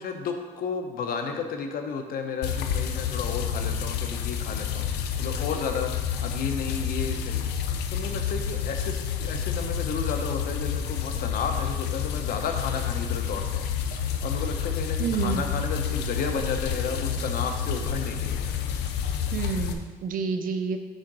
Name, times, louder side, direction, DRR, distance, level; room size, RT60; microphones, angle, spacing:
voice 1, 0.0-13.7 13.9-18.4, left 5 dB, 60° left, 5 dB, 0.9 m, -33 dB
sound 1, 2.4-19.7, left 8 dB, 80° left, 0.6 m, -29 dB
voice 2, 15.0-15.4 19.3-20.8, right 6 dB, 55° right, 6 dB, 0.6 m, -29 dB
6.4 x 3.7 x 6.2 m, 1.3 s
cardioid pair, 110°, 17 cm